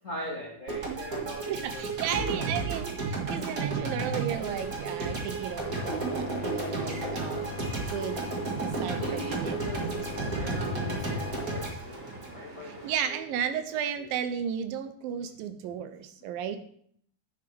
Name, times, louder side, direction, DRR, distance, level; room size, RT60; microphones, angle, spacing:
voice 1, 0.0-2.5 6.5-6.6 9.0-13.2 13.7-14.1, left 1 dB, 85° left, -2 dB, 0.7 m, -41 dB
sound 1, 0.7-12.9, right 4 dB, 40° right, 1.2 m, -33 dB
voice 2, 1.5-7.5 7.8-8.2 8.6-10.4 12.6-16.6, right 8 dB, 80° right, 9 dB, 2.4 m, -34 dB
sound 2, 4.3-12.9, right 2 dB, 5° right, 3.1 m, -48 dB
sound 3, 5.6-11.7, left 5 dB, 70° left, 1.9 m, -39 dB
10.5 x 8.8 x 3.4 m, 0.64 s
omnidirectional pair, 4.3 m